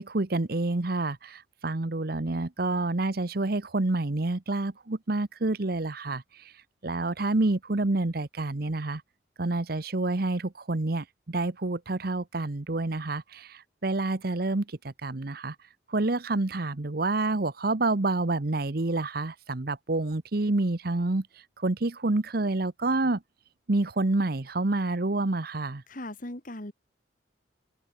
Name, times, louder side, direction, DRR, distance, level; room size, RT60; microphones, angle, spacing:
voice 1, 0.0-6.2 6.8-9.0 9.4-14.7 15.0-15.5 15.9-21.3 21.6-23.2 23.7-25.8, right 2 dB, 55° right, 1.0 m, -28 dB
voice 2, 25.9-26.7, left 1 dB, 45° left, 2.5 m, -38 dB
head